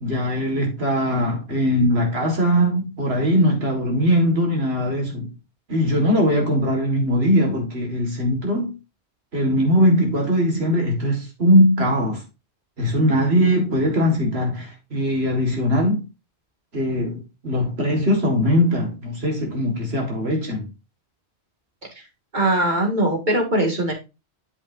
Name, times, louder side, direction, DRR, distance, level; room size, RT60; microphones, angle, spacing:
voice 1, 0.0-5.3 5.7-8.8 9.3-12.2 12.8-16.0 16.7-20.7, equal, 65° right, 2.3 m, -20 dB
voice 2, 22.3-23.9, right 1 dB, 45° right, 2.3 m, -20 dB
8.5 x 7.0 x 2.7 m
omnidirectional pair, 1.1 m